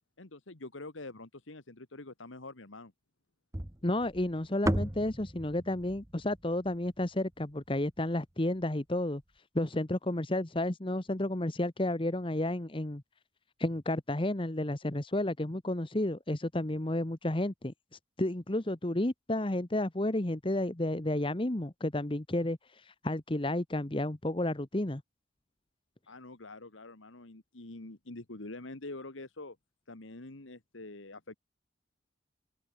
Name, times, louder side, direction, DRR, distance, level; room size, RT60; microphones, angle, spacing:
voice 1, 0.2-2.9 26.1-29.6 29.9-31.4, left 2 dB, 85° left, 1.9 m, -45 dB
sound 1, 3.5-7.8, right 1 dB, 15° right, 1.1 m, -36 dB
voice 2, 3.8-9.2 9.5-13.0 13.6-17.7 18.2-25.0, left 1 dB, 25° left, 1.1 m, -31 dB
open air
head